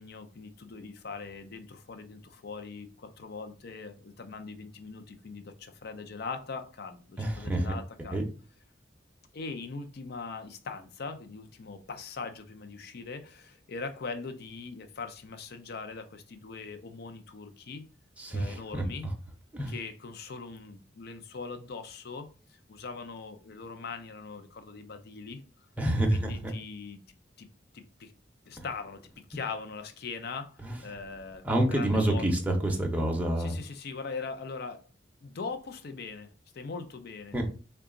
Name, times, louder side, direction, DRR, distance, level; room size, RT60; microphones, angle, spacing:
voice 1, 0.0-8.3 9.3-17.8 18.3-19.1 19.7-25.4 26.1-27.0 27.4-27.5 27.7-28.1 28.5-32.3 33.4-34.9 35.2-37.4, left 4 dB, 60° left, 0.5 m, -41 dB
voice 2, 7.2-7.7 8.1-8.2 18.2-18.8 19.5-19.7 25.8-26.5 30.6-30.8 31.4-33.5 37.3-37.5, right 1 dB, 10° right, 0.6 m, -28 dB
3.8 x 2.3 x 3.7 m
head